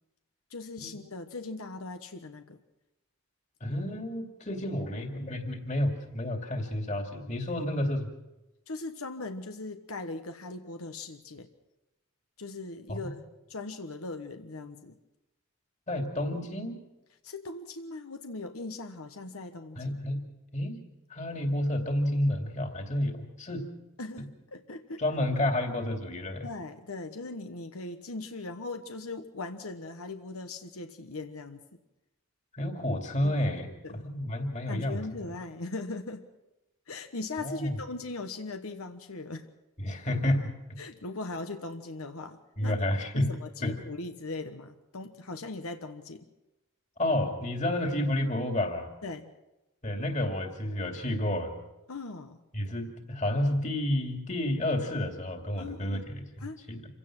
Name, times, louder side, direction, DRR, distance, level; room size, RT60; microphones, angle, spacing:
voice 1, 0.5-2.6 7.6-7.7 8.7-11.5 12.4-13.2 13.5-15.0 17.2-19.9 24.0-25.0 26.4-31.6 33.2-34.0 34.7-36.3 36.9-39.5 40.8-42.8 43.1-46.3 49.0-49.3 51.9-52.4 55.6-56.0 56.4-56.6, left 3 dB, 85° left, 7 dB, 1.3 m, -39 dB
voice 2, 3.6-8.1 12.9-13.0 15.9-16.8 19.8-20.2 20.5-20.8 21.1-23.7 25.0-26.5 32.5-33.7 34.0-35.3 37.4-37.7 39.8-40.5 42.6-43.3 43.6-43.7 47.0-48.9 49.8-51.6 52.5-56.2 56.7-56.9, left 1 dB, 35° left, 4 dB, 2.5 m, -30 dB
27.0 x 16.5 x 6.1 m, 0.98 s
head